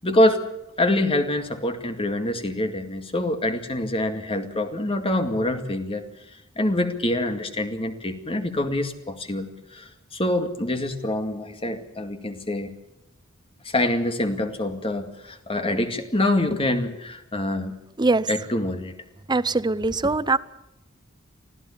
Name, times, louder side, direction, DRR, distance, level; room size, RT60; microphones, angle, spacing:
voice 1, 0.0-0.5 0.8-6.1 6.6-12.7 13.6-17.8 18.3-18.9 20.0-20.1, left 1 dB, 25° left, 2.2 m, -25 dB
voice 2, 19.3-20.4, right 3 dB, 20° right, 0.7 m, -22 dB
25.0 x 14.5 x 8.6 m
head